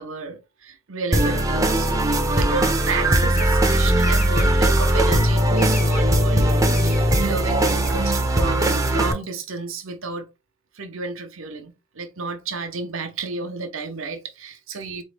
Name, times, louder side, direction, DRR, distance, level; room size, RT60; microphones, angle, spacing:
voice 1, 0.0-2.1 2.4-10.3 10.7-15.0, right 4 dB, 70° right, 0.8 m, -31 dB
sound 1, 1.1-9.1, right 1 dB, 15° right, 0.6 m, -19 dB
sound 2, 3.3-8.7, equal, 35° left, 0.9 m, -33 dB
4.2 x 3.1 x 3.3 m
head